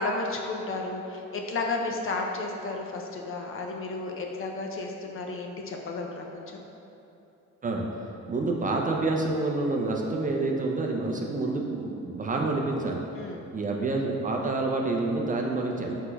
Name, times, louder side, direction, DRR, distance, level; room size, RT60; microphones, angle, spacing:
voice 1, 0.0-6.6 13.1-13.4, left 3 dB, 45° left, 1 dB, 0.5 m, -32 dB
voice 2, 8.3-13.0 13.5-16.0, right 2 dB, 30° right, 0 dB, 0.4 m, -28 dB
4.6 x 4.1 x 2.2 m, 2.9 s
cardioid pair, 90°, 30 cm